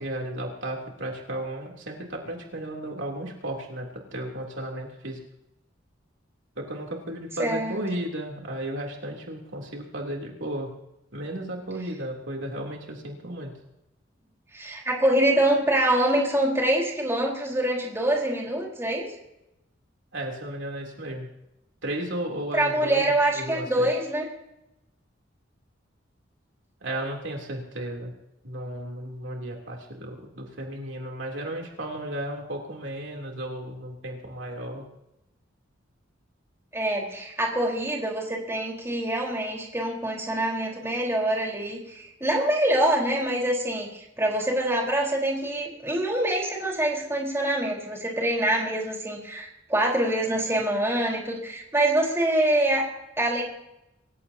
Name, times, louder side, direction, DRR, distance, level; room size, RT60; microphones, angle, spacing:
voice 1, 0.0-5.2 6.6-10.7 11.1-13.5 20.1-21.3 21.8-23.9 26.8-28.1 28.4-34.8, right 1 dB, 75° right, 0 dB, 3.4 m, -34 dB
voice 2, 7.4-7.7 14.5-19.1 22.5-24.3 36.7-52.9 53.2-53.4, right 1 dB, 15° right, -2 dB, 4.4 m, -25 dB
26.5 x 16.0 x 2.9 m, 0.87 s
head